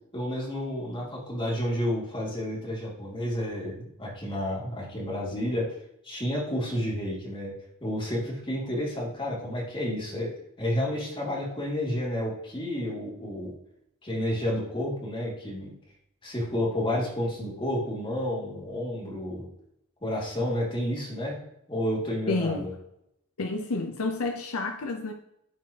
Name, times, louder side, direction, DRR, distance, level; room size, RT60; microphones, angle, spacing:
voice 1, 0.1-5.7 6.0-7.5 7.8-10.3 10.6-13.5 14.0-15.7 16.2-19.5 20.0-21.4 21.7-22.7, left 1 dB, 25° left, 2.6 m, -30 dB
voice 2, 22.3-22.7 23.4-25.1, left 3 dB, 70° left, 0.7 m, -29 dB
13.0 x 4.7 x 2.9 m
head